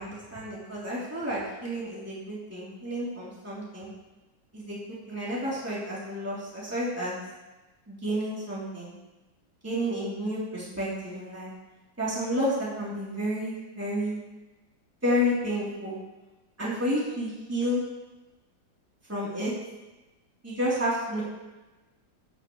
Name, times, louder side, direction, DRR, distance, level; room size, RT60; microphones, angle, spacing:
voice 1, 0.0-3.9 4.5-4.8 5.1-7.2 7.9-8.9 9.6-11.5 12.0-14.2 15.0-16.0 16.6-17.8 19.1-19.5 20.4-21.2, equal, 5° right, -8 dB, 3.4 m, -30 dB
14.5 x 10.5 x 3.2 m, 1.1 s
omnidirectional pair, 2.0 m